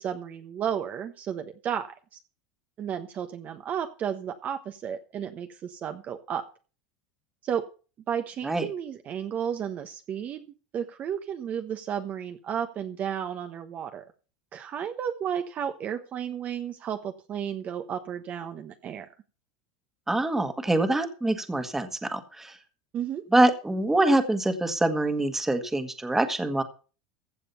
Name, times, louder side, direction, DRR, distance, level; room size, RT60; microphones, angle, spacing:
voice 1, 0.0-1.9 2.8-6.5 7.4-7.7 8.1-10.4 10.7-14.0 14.5-19.1 22.9-23.2, right 8 dB, 40° right, 7 dB, 1.1 m, -33 dB
voice 2, 20.1-22.6 23.3-26.6, right 2 dB, 10° right, 8 dB, 1.7 m, -25 dB
15.5 x 7.3 x 5.8 m, 0.36 s
supercardioid pair, 120°, 4 cm